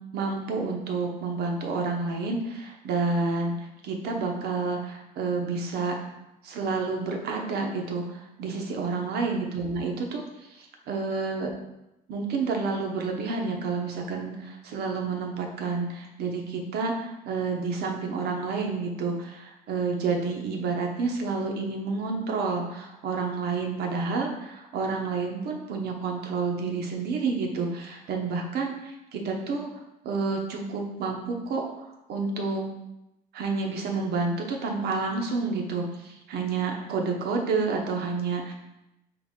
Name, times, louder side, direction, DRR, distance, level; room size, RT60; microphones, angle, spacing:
voice 1, 0.1-3.5 3.8-6.1 6.4-10.2 10.5-11.5 12.1-29.7 30.0-32.6 33.3-38.5, right 4 dB, 75° right, 2 dB, 0.8 m, -29 dB
3.8 x 3.4 x 3.6 m, 0.90 s
cardioid pair, 110°, 17 cm